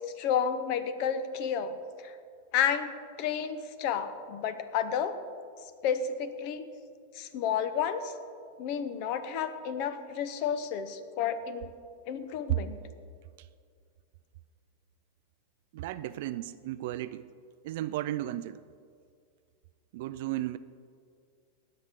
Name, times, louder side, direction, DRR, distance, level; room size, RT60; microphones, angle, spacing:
voice 1, 0.2-1.7 2.0-2.1 2.5-2.9 3.2-5.2 5.8-6.7 7.1-8.1 8.6-11.7 12.1-12.8, left 8 dB, 50° left, 0.8 m, -31 dB
voice 2, 15.7-17.3 17.6-18.6 19.9-20.6, right 15 dB, 60° right, 0.3 m, -34 dB
19.5 x 7.8 x 3.7 m
supercardioid pair, 145°, 0 cm